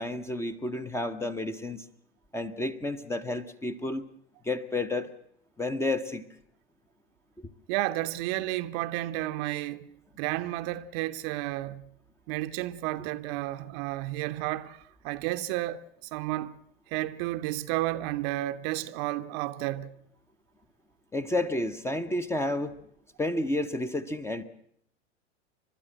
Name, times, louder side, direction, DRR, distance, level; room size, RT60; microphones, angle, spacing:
voice 1, 0.0-1.8 2.3-4.0 4.4-5.1 5.6-6.2 21.1-22.7 23.2-24.4, left 2 dB, 5° left, 0.8 m, -31 dB
voice 2, 7.7-11.9 12.3-15.8 16.1-16.6 16.9-19.9, right 16 dB, 40° right, 0.8 m, -32 dB
30.0 x 12.5 x 7.6 m
figure-of-eight pair, 90°, 35 cm